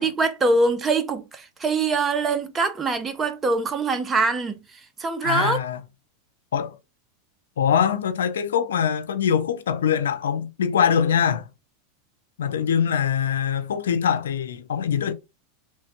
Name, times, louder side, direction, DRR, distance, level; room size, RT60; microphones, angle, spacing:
voice 1, 0.0-5.6, right 3 dB, 20° right, 0.6 m, -23 dB
voice 2, 5.2-5.8 6.5-6.8 7.6-11.5 12.4-15.1, left 8 dB, 85° left, 0.4 m, -23 dB
3.1 x 2.2 x 2.9 m
hypercardioid pair, 110°, 0 cm